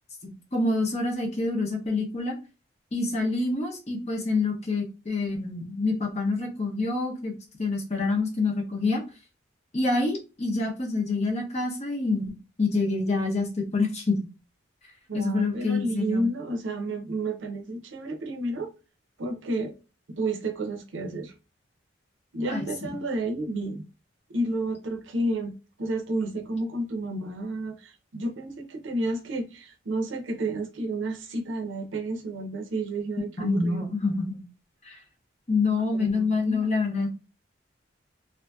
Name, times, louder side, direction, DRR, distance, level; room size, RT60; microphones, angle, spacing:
voice 1, 0.2-2.4 2.9-7.3 7.6-9.0 9.7-12.3 12.6-14.2 15.1-16.2 22.5-23.0 33.4-34.4 34.8-35.0 35.5-37.1, left 3 dB, 35° left, 0.7 m, -27 dB
voice 2, 15.1-18.7 19.2-19.7 20.1-21.3 22.3-23.8 24.3-25.5 25.8-33.8 35.9-36.7, right 2 dB, 75° right, 0.6 m, -31 dB
2.6 x 2.5 x 2.3 m
head